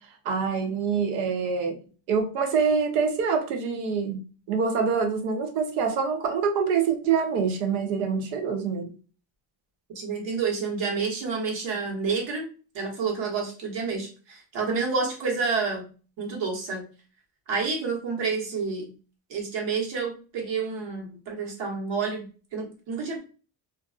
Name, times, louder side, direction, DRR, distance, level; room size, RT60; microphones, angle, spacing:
voice 1, 0.2-1.8 2.1-8.9, right 5 dB, 90° right, 5 dB, 0.8 m, -25 dB
voice 2, 9.9-12.5 12.7-15.9 16.2-16.9 17.5-18.9 19.3-23.2, right 4 dB, 70° right, -1 dB, 1.2 m, -29 dB
2.5 x 2.3 x 2.3 m, 0.36 s
cardioid pair, 100°, 45 cm